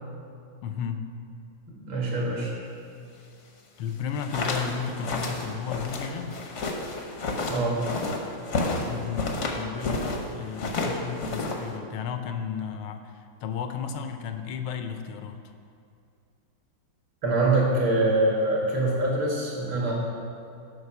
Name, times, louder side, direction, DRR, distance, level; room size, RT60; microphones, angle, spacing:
voice 1, 0.6-1.0 3.8-6.4 8.8-9.3 9.6-10.0 10.3-15.4, left 7 dB, 85° left, 7 dB, 1.5 m, -33 dB
voice 2, 1.8-2.5 7.5-7.8 17.2-19.9, right 2 dB, 70° right, -3 dB, 2.5 m, -24 dB
sound 1, 4.0-10.2 10.5-11.8, left 3 dB, 60° left, 0.8 m, -30 dB
8.0 x 5.3 x 5.6 m, 2.5 s
omnidirectional pair, 2.3 m